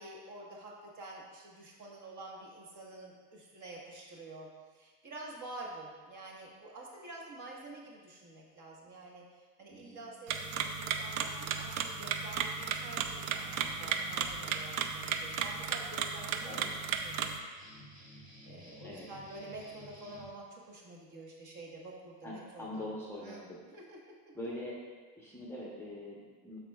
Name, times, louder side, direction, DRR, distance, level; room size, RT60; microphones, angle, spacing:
voice 1, 0.0-16.5 17.0-17.4 17.9-22.9 23.2-24.0, right 2 dB, 40° right, -2 dB, 1.5 m, -48 dB
sound 1, 10.3-17.4, right 7 dB, 65° right, 0.7 m, -35 dB
sound 2, 17.6-20.3, equal, 20° right, 1.6 m, -53 dB
voice 2, 22.2-23.6 24.3-24.8 25.2-26.6, left 1 dB, 5° left, -5 dB, 0.9 m, -43 dB
12.0 x 4.3 x 2.4 m, 1.4 s
supercardioid pair, 120°, 46 cm